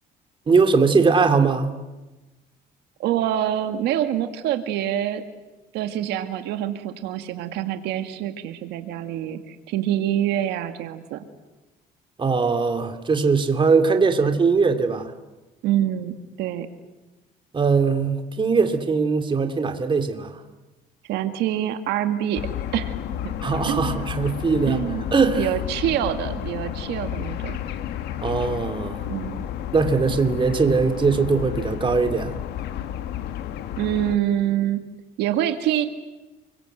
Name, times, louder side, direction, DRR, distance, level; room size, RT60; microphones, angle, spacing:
voice 1, 0.5-1.8 12.2-15.1 17.5-20.4 23.4-24.8 25.1-25.5 28.2-29.1 29.7-32.4, right 4 dB, 30° right, 7 dB, 2.7 m, -20 dB
voice 2, 3.0-5.2 5.7-11.2 15.6-16.7 21.0-22.9 23.2-23.3 23.7-24.1 24.7-25.1 25.4-27.6 29.1-29.5 33.8-34.8 35.2-35.9, right 11 dB, 85° right, 8 dB, 2.0 m, -26 dB
sound 1, 22.3-34.2, left 11 dB, 80° left, 1.8 m, -31 dB
29.5 x 23.5 x 8.0 m, 1.1 s
cardioid pair, 110°, 17 cm